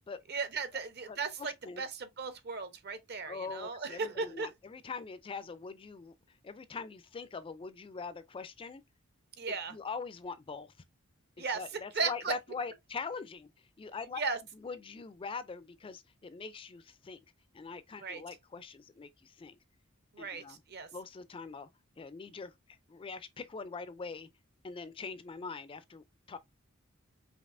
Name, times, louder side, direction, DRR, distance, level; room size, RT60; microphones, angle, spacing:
voice 1, 0.3-4.5 9.4-9.7 11.4-11.6 11.9-12.3 14.2-14.4 18.0-18.2 20.1-20.9, right 4 dB, 50° right, 0.8 m, -36 dB
voice 2, 1.1-1.8 3.3-8.8 9.5-10.7 11.4-13.5 13.8-14.2 14.5-17.2 17.5-19.6 20.2-20.6 20.9-21.7 22.0-24.3 24.6-26.4, left 4 dB, 25° left, 0.4 m, -43 dB
5.2 x 2.9 x 2.5 m
head